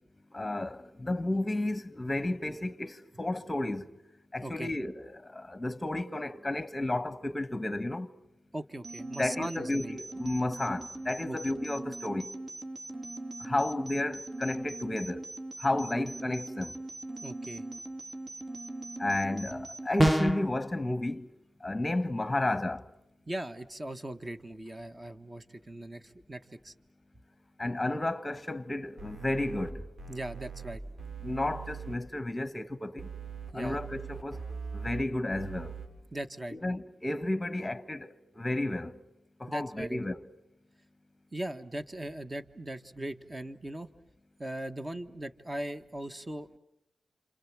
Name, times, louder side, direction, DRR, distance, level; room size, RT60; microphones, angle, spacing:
voice 1, 0.3-3.9 4.3-8.1 9.2-12.3 13.4-15.3 15.6-16.7 19.0-21.3 21.6-22.8 27.6-29.9 31.2-33.1 33.5-34.4 34.7-35.8 36.5-39.0 39.4-40.2, left 2 dB, 15° left, 1.5 m, -32 dB
voice 2, 8.5-10.0 11.3-11.4 17.2-17.6 23.3-26.7 30.1-30.8 33.5-33.8 36.1-36.5 39.5-40.0 41.3-43.9 44.4-46.6, right 1 dB, 25° right, 1.5 m, -39 dB
sound 1, 8.8-19.9, right 2 dB, 55° right, 2.9 m, -41 dB
sound 2, 20.0-20.5, right 1 dB, 10° right, 1.0 m, -23 dB
sound 3, 29.0-29.7 30.0-31.9 33.0-35.0 35.3-35.9, right 6 dB, 75° right, 5.3 m, -41 dB
28.5 x 27.5 x 7.6 m
cardioid pair, 60°, 0 cm